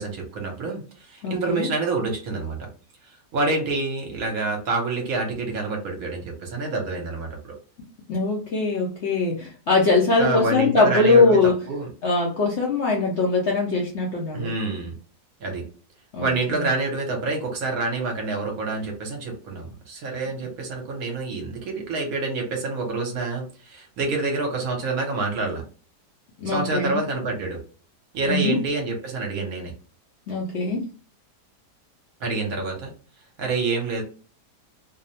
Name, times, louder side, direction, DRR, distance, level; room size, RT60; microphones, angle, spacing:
voice 1, 0.0-2.7 3.3-7.5 10.2-11.9 14.3-14.9 15.4-15.6 16.2-25.6 26.5-27.6 28.1-29.7 32.2-32.9 33.4-34.0, right 3 dB, 65° right, 2 dB, 1.0 m, -27 dB
voice 2, 1.2-1.7 8.1-11.6 12.0-14.5 16.1-16.6 26.4-27.0 28.3-28.6 30.3-30.8, left 3 dB, 75° left, -2 dB, 0.6 m, -21 dB
2.7 x 2.0 x 2.7 m, 0.39 s
omnidirectional pair, 1.8 m